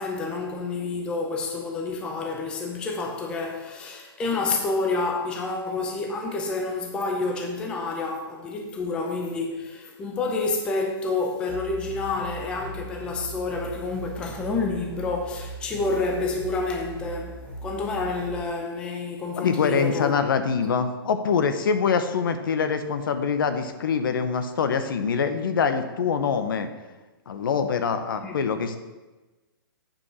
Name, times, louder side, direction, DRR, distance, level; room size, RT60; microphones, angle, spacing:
voice 1, 0.0-20.1 28.2-28.4, left 3 dB, 5° left, 0.5 m, -29 dB
sound 1, 11.5-18.4, right 2 dB, 10° right, 1.5 m, -39 dB
voice 2, 19.4-26.7 27.3-28.8, left 6 dB, 60° left, 0.9 m, -24 dB
8.7 x 5.2 x 6.1 m
hypercardioid pair, 165°, 13 cm